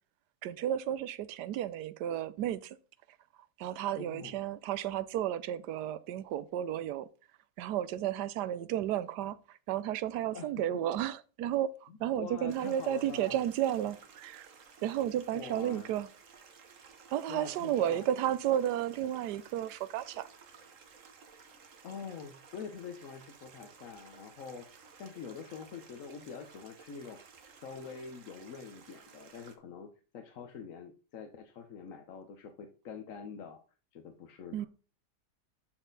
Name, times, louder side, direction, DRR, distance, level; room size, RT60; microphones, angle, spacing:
voice 1, 0.4-2.8 3.6-7.1 7.6-14.5 14.8-16.1 17.1-20.3 34.5-34.7, right 11 dB, 90° right, 1.2 m, -33 dB
voice 2, 4.0-4.4 10.3-10.5 11.9-13.4 15.3-15.9 17.3-18.2 21.8-27.2 27.6-33.6 33.9-34.7, left 6 dB, 60° left, 1.1 m, -45 dB
Stream, 12.5-29.6, right 5 dB, 55° right, 1.3 m, -56 dB
12.0 x 4.3 x 3.9 m
omnidirectional pair, 1.7 m